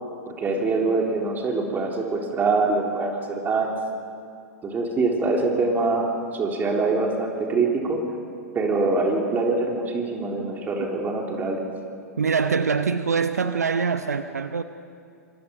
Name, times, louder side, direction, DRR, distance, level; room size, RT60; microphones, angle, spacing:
voice 1, 0.3-3.8 4.6-8.0 8.5-11.6, right 3 dB, 20° right, 1 dB, 3.7 m, -24 dB
voice 2, 12.2-14.6, right 5 dB, 75° right, 10 dB, 0.9 m, -24 dB
26.5 x 24.0 x 5.4 m, 2.3 s
figure-of-eight pair, 95°, 9 cm